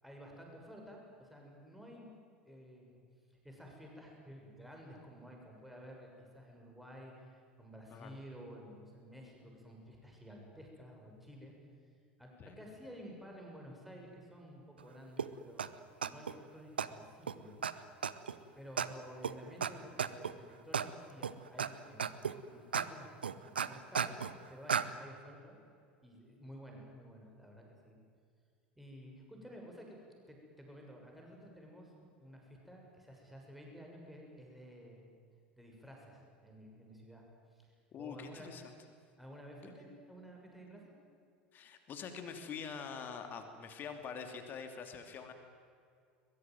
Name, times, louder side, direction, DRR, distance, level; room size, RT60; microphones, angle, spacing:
voice 1, 0.0-2.1 2.5-3.0 3.4-11.5 12.2-17.6 18.5-24.1 24.5-25.6 26.0-28.0 28.8-31.9 32.2-35.1 35.6-37.2 37.5-38.5 39.2-40.9, equal, ahead, 0 dB, 6.9 m, -52 dB
sound 1, 15.2-15.3 15.6-15.7 16.0-16.3 16.8-16.9 17.3-17.4 17.6-17.7 18.0-18.3 18.8-18.9 19.2-19.3 19.6-19.7 20.0-20.3 20.7-20.9 21.2-21.7 22.0-22.3 22.7-22.9 23.2-24.3 24.7-24.8, right 7 dB, 75° right, 0.9 m, -33 dB
voice 2, 37.9-38.6 41.5-45.3, left 6 dB, 35° left, 6 dB, 2.9 m, -45 dB
22.0 x 22.0 x 9.4 m, 2.3 s
figure-of-eight pair, 75°, 5 cm